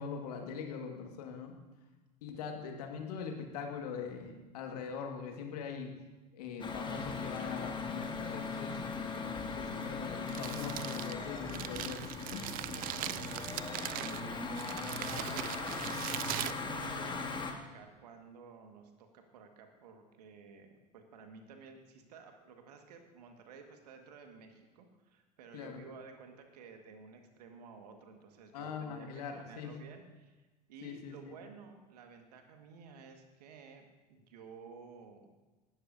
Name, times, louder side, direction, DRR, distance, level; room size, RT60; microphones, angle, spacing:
voice 1, 0.0-1.6 2.2-5.9 6.3-8.8 9.1-12.5 25.5-25.8 28.5-29.7 30.8-31.3, left 6 dB, 65° left, 3 dB, 1.9 m, -42 dB
sound 1, 6.6-17.5, left 4 dB, 20° left, 1.8 m, -39 dB
Crumpling crinkling, 10.1-17.4, right 15 dB, 45° right, 0.5 m, -41 dB
voice 2, 13.0-30.4 30.7-35.3, right 5 dB, 70° right, 5 dB, 1.8 m, -53 dB
18.0 x 12.5 x 2.7 m, 1.2 s
figure-of-eight pair, 75°, 21 cm